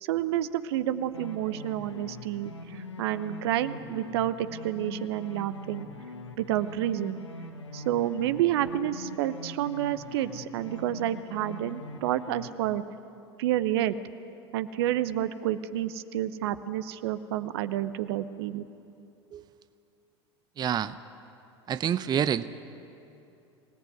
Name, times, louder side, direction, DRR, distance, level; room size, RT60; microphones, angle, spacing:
voice 1, 0.0-5.9 6.4-7.2 7.7-12.8 13.4-14.0 14.5-18.7, right 12 dB, 65° right, 12 dB, 0.9 m, -29 dB
sound 1, 1.1-12.5, left 2 dB, 90° left, 1.3 m, -43 dB
voice 2, 20.6-20.9 21.7-22.5, right 9 dB, 30° right, 13 dB, 0.7 m, -27 dB
25.5 x 17.5 x 9.3 m, 2.7 s
figure-of-eight pair, 75°, 14 cm